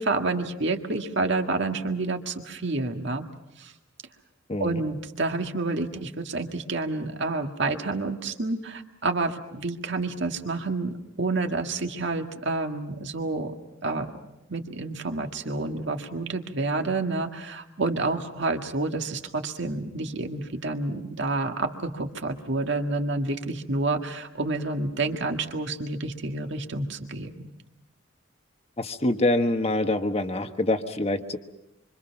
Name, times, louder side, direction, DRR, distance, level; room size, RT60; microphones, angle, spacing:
voice 1, 0.0-3.3 3.6-3.7 4.6-13.5 13.8-14.1 14.5-27.5, right 3 dB, 65° right, 4 dB, 1.9 m, -29 dB
voice 2, 4.5-4.8 28.8-31.4, left 1 dB, 30° left, 7 dB, 1.3 m, -25 dB
26.5 x 25.0 x 5.9 m, 0.92 s
head